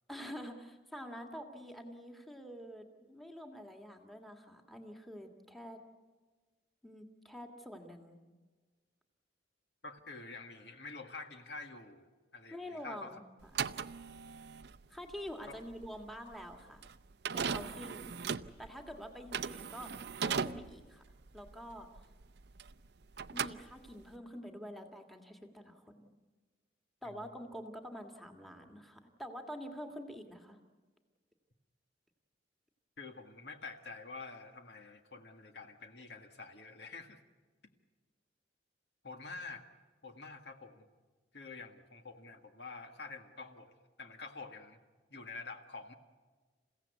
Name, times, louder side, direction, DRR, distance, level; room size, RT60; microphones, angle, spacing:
voice 1, 0.1-5.8 6.8-8.2 12.5-13.5 14.9-16.9 17.3-18.1 18.6-19.9 20.2-21.0 21.3-21.9 23.3-26.1 27.0-30.6, equal, ahead, 4 dB, 1.8 m, -47 dB
voice 2, 9.8-13.2 15.4-15.6 27.0-27.3 33.0-37.2 39.0-39.7 40.0-40.9 41.3-43.7 44.0-44.8 45.1-45.9, left 3 dB, 65° left, 6 dB, 1.8 m, -48 dB
sound 1, 13.4-22.9 23.1-24.2, right 6 dB, 65° right, 0.6 m, -39 dB
29.0 x 16.0 x 8.2 m, 1.4 s
head